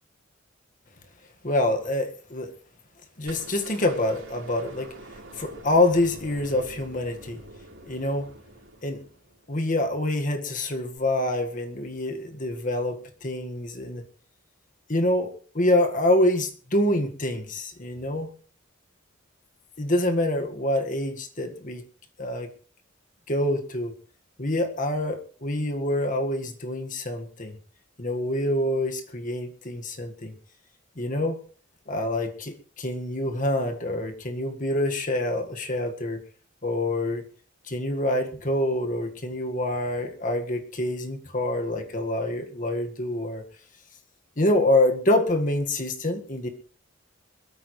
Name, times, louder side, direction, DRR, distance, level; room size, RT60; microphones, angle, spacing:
voice 1, 1.4-2.5 3.2-4.9 5.3-7.4 7.8-8.3 8.8-9.0 9.5-14.0 14.9-18.3 19.8-21.8 22.2-22.5 23.3-23.9 24.4-27.6 28.0-30.3 31.0-31.4 31.9-36.2 36.6-37.2 37.7-43.4 44.4-46.5, left 1 dB, 40° left, 1.8 m, -26 dB
sound 1, 3.3-9.4 11.0-11.1, right 1 dB, 80° right, 4.1 m, -46 dB
21.5 x 13.0 x 3.2 m
head